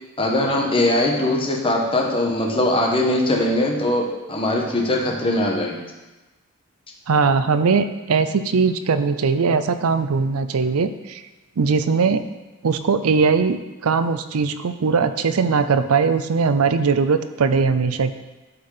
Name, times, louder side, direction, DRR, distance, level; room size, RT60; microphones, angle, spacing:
voice 1, 0.2-5.8, left 1 dB, 25° left, 0 dB, 1.2 m, -21 dB
voice 2, 7.1-11.2 11.6-12.2 12.6-18.1, right 5 dB, 75° right, 11 dB, 0.5 m, -20 dB
12.0 x 4.4 x 4.9 m, 1.1 s
head